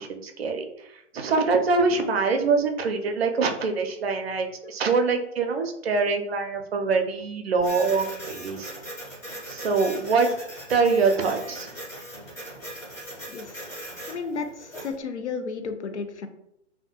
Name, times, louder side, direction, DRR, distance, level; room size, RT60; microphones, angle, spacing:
voice 1, 0.0-8.7 9.5-10.3 10.7-11.8, right 4 dB, 60° right, 4 dB, 0.5 m, -24 dB
Printer, 7.6-14.9, right 1 dB, 10° left, 0.6 m, -39 dB
voice 2, 14.1-16.3, left 5 dB, 70° left, 7 dB, 0.5 m, -32 dB
2.3 x 2.1 x 2.8 m, 0.78 s
figure-of-eight pair, 120°, 36 cm